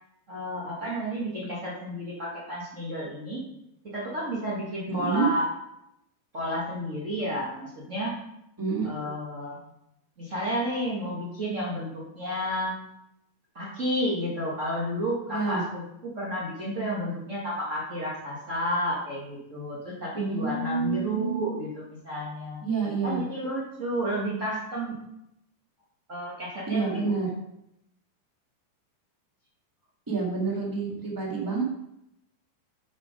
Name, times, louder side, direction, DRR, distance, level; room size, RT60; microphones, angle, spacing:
voice 1, 0.3-3.4 3.8-5.5 6.3-8.2 8.8-9.6 10.2-12.7 13.5-22.6 23.0-24.9 26.1-27.1, equal, 75° right, -6 dB, 0.6 m, -31 dB
voice 2, 4.9-5.2 8.6-9.1 15.3-15.6 20.1-21.4 22.6-23.2 26.7-27.3 30.1-31.6, right 4 dB, 10° right, -4 dB, 1.0 m, -28 dB
9.1 x 5.9 x 5.1 m, 0.83 s
omnidirectional pair, 4.4 m